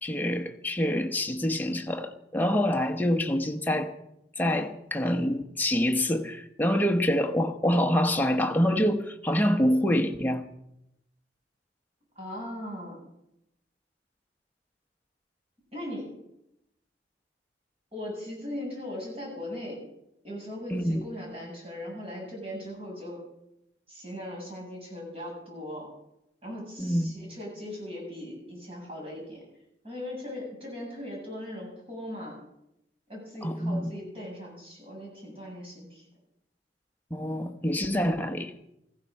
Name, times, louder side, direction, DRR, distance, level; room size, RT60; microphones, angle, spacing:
voice 1, 0.0-3.9 4.4-10.4 20.7-21.0 26.8-27.1 33.4-33.9 37.1-38.5, equal, 10° left, 1.0 m, -26 dB
voice 2, 12.2-13.0 15.7-16.1 17.9-19.8 20.2-23.2 23.9-25.9 26.4-29.4 29.8-32.3 33.1-36.0, left 1 dB, 35° right, 7.7 m, -39 dB
15.5 x 15.0 x 5.4 m
head